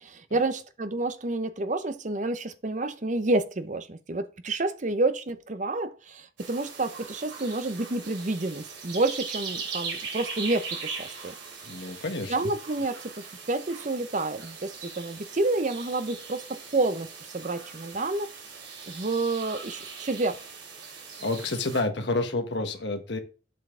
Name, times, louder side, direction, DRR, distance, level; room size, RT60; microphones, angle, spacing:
voice 1, 0.0-11.3 12.3-17.1 17.3-18.3 18.9-20.4, right 2 dB, 45° right, 0.7 m, -29 dB
sound 1, 6.4-21.8, right 5 dB, 90° right, 2.9 m, -40 dB
voice 2, 11.6-12.5 21.2-23.2, left 2 dB, 75° left, 1.4 m, -29 dB
7.6 x 5.6 x 3.8 m
head